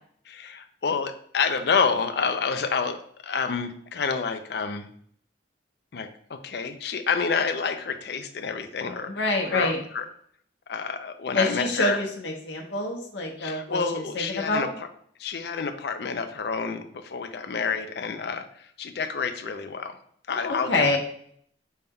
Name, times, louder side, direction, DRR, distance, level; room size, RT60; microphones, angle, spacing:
voice 1, 0.3-4.9 5.9-10.0 10.7-12.0 13.4-14.9 15.2-20.0 20.3-21.0, left 5 dB, 60° left, 8 dB, 0.4 m, -29 dB
voice 2, 9.0-9.8 11.3-14.7 20.3-21.0, left 2 dB, 75° left, 1 dB, 0.9 m, -26 dB
5.5 x 2.2 x 3.5 m, 0.63 s
head